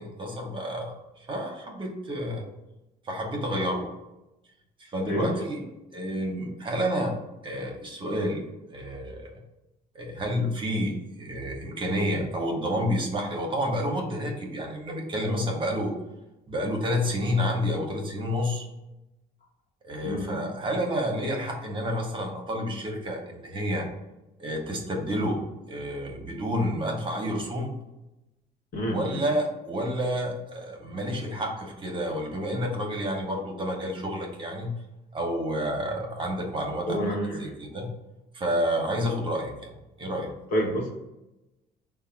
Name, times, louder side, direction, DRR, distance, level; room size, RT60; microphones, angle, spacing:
voice 1, 0.0-2.4 3.0-3.9 4.8-5.6 5.9-7.1 7.4-9.3 9.9-15.9 16.5-18.7 19.8-23.9 24.4-25.4 25.7-27.8 28.9-34.7 35.1-37.0 37.4-37.9 38.3-39.7 40.0-40.3, equal, 30° right, 2 dB, 0.9 m, -29 dB
voice 2, 5.1-5.5 20.0-20.4 28.7-29.3 36.8-37.5 40.5-40.9, equal, 55° left, 0 dB, 1.1 m, -28 dB
4.7 x 2.2 x 4.4 m, 0.95 s
cardioid pair, 110°, 17 cm